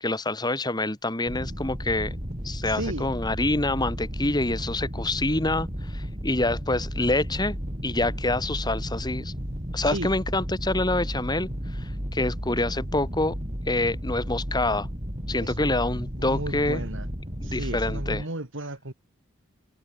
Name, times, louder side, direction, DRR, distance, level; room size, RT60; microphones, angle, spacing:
voice 1, 0.0-2.2 2.4-7.6 7.8-9.3 9.7-13.4 13.7-14.9 15.3-16.9 17.4-18.2, left 2 dB, 20° left, 2.8 m, -26 dB
sound 1, 1.3-18.2, equal, 30° right, 7.7 m, -33 dB
voice 2, 2.6-3.1 9.8-10.1 15.4-15.8 16.2-17.1 17.4-18.9, right 1 dB, 60° right, 2.7 m, -34 dB
head